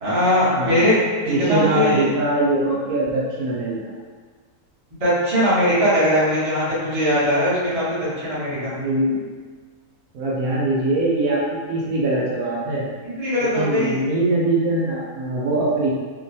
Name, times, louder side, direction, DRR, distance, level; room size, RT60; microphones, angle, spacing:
voice 1, 0.0-2.0 5.0-8.7 13.0-14.0, equal, 30° right, -10 dB, 0.8 m, -20 dB
voice 2, 0.5-0.9 1.2-3.9 8.5-9.2 10.1-12.9 13.4-15.9, right 2 dB, 80° right, -6 dB, 1.1 m, -22 dB
3.0 x 2.2 x 2.7 m, 1.5 s
omnidirectional pair, 1.6 m